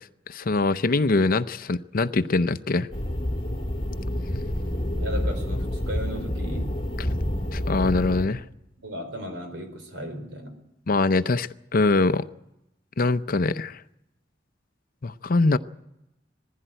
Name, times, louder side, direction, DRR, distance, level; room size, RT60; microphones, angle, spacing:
voice 1, 0.3-2.9 7.5-8.4 10.9-12.2 13.0-13.8 15.0-15.6, left 3 dB, 50° left, 0.7 m, -23 dB
sound 1, 2.9-8.3, left 1 dB, 30° left, 2.8 m, -28 dB
voice 2, 5.0-6.7 8.8-10.6, equal, 75° right, 4.5 m, -36 dB
19.5 x 15.5 x 9.0 m
head